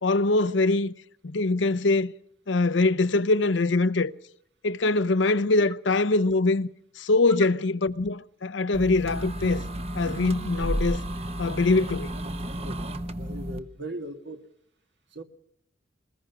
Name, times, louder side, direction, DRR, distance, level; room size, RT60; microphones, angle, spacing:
voice 1, 0.0-0.9 1.2-2.1 2.5-4.1 4.6-6.7 7.0-9.7 10.0-11.0 11.4-12.1, left 2 dB, 75° left, 0.7 m, -23 dB
sound 1, 8.7-13.6, right 1 dB, 35° right, 1.0 m, -32 dB
voice 2, 12.6-14.4 15.1-15.2, right 1 dB, 65° right, 1.9 m, -39 dB
21.5 x 20.0 x 6.1 m
head